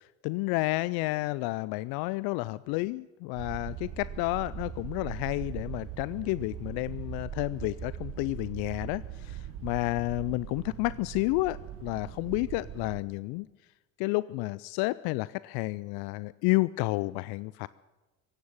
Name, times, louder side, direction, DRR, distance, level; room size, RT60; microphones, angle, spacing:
voice 1, 0.0-13.5 14.0-17.7, left 21 dB, 70° left, 18 dB, 0.5 m, -31 dB
sound 1, 3.4-13.0, right 10 dB, 55° right, 1.2 m, -40 dB
16.0 x 8.9 x 9.4 m, 1.2 s
hypercardioid pair, 75°, 39 cm